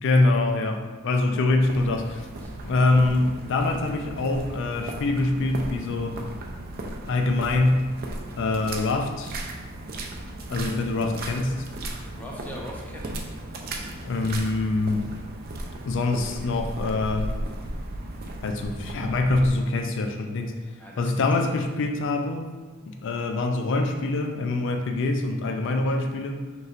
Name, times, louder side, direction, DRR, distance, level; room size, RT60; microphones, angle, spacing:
voice 1, 0.0-2.3 2.6-6.2 7.1-7.9 8.4-9.4 10.5-11.6 14.0-15.1 15.8-17.3 18.4-20.5 21.0-22.5 23.0-26.4, left 2 dB, 55° left, 4 dB, 0.4 m, -24 dB
sound 1, 1.6-19.5, right 1 dB, 45° right, 0.4 m, -36 dB
voice 2, 11.9-13.3 20.8-21.6, equal, 5° left, -3 dB, 0.6 m, -41 dB
5.4 x 3.1 x 2.4 m, 1.3 s
head